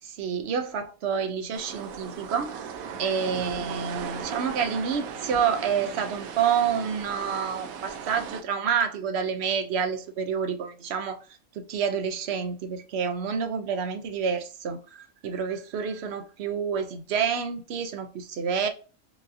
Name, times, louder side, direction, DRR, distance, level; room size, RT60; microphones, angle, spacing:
voice 1, 0.0-2.7 3.0-11.2 11.6-18.7, right 7 dB, 65° right, 0.7 m, -28 dB
sound 1, 1.5-8.4, right 7 dB, 80° right, 1.0 m, -37 dB
4.7 x 2.6 x 2.6 m
omnidirectional pair, 1.5 m